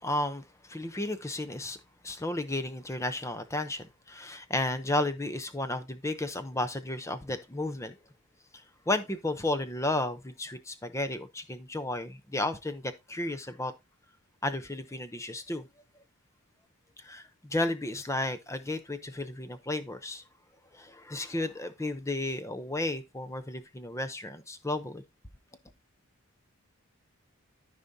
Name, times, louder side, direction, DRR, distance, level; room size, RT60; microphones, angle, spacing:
voice 1, 0.0-1.8 2.0-8.0 8.5-13.7 14.4-15.6 17.0-20.2 20.7-25.0, left 2 dB, 15° left, 0.7 m, -33 dB
13.5 x 5.1 x 2.7 m
head